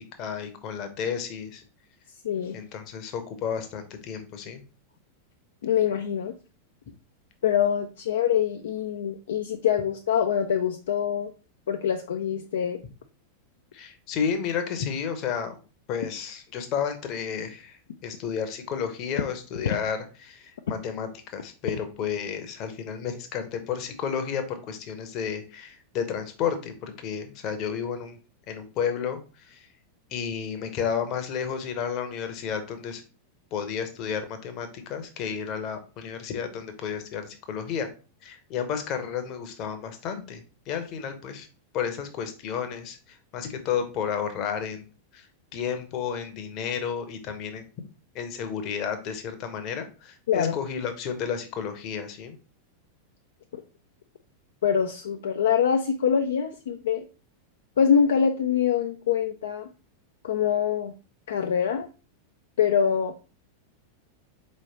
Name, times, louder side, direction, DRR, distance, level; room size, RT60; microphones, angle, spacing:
voice 1, 0.2-1.6 2.5-4.6 13.7-15.6 15.9-28.2 28.5-29.7 30.1-33.0 33.5-37.9 38.2-41.5 41.7-44.9 45.1-45.3 45.5-47.6 48.1-52.3, left 7 dB, 40° left, 8 dB, 0.8 m, -32 dB
voice 2, 2.2-2.6 5.6-6.3 7.4-11.3 11.7-12.8 50.3-50.6 53.5-53.6 54.6-57.0 57.8-59.7 60.2-60.9 61.3-61.9 62.6-63.1, left 8 dB, 60° left, 5 dB, 0.3 m, -24 dB
4.4 x 3.2 x 2.8 m, 0.34 s
figure-of-eight pair, 90°, 0 cm